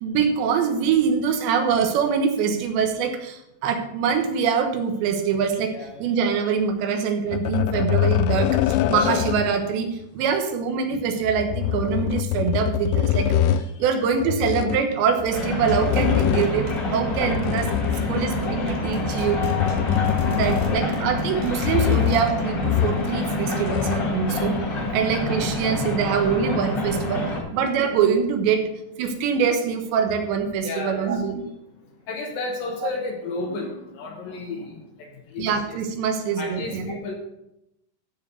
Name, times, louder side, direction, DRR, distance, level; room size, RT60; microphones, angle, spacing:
voice 1, 0.0-5.7 6.0-9.9 10.1-19.5 20.3-24.6 24.9-27.2 27.5-28.6 29.0-31.3 35.4-36.8, right 6 dB, 80° right, 6 dB, 3.4 m, -24 dB
voice 2, 5.7-6.0 13.7-13.9 18.1-18.2 19.1-19.3 20.5-20.9 30.6-31.2 32.0-35.8 36.4-37.1, left 3 dB, 65° left, 2 dB, 2.6 m, -33 dB
sound 1, 7.3-9.6 11.2-13.7 14.2-14.9 15.6-16.7 17.1-18.4 19.0-21.0 21.6-22.3 22.6-23.2 23.5-24.1 25.0-25.1, left 12 dB, 80° left, 2.5 m, -24 dB
sound 2, 15.1-22.2, right 1 dB, 60° right, 1.9 m, -37 dB
sound 3, 15.3-27.4, left 2 dB, 45° left, 1.4 m, -27 dB
13.0 x 4.7 x 6.9 m, 0.84 s
omnidirectional pair, 5.0 m